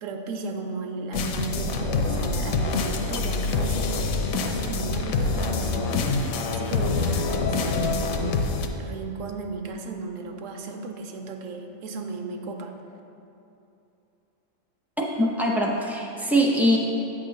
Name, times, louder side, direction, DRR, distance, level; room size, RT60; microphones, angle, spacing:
voice 1, 0.0-6.1 6.5-8.5 8.8-12.7, right 3 dB, 70° right, 4 dB, 1.0 m, -35 dB
sound 1, 1.1-8.7, left 4 dB, 80° left, 1.0 m, -26 dB
voice 2, 15.0-16.8, equal, ahead, -2 dB, 0.4 m, -22 dB
8.5 x 3.8 x 6.5 m, 2.8 s
omnidirectional pair, 1.5 m